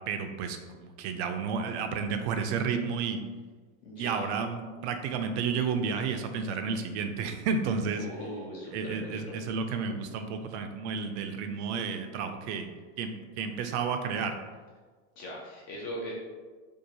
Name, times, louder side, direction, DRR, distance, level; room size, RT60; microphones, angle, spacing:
voice 1, 0.1-3.2 4.0-8.1 8.7-12.7 13.0-13.1 13.4-14.3, right 5 dB, 60° right, 6 dB, 0.5 m, -31 dB
voice 2, 3.8-4.3 8.0-9.4 15.2-16.1, equal, 25° left, -3 dB, 0.3 m, -39 dB
4.6 x 2.4 x 2.7 m, 1.4 s
supercardioid pair, 165°, 39 cm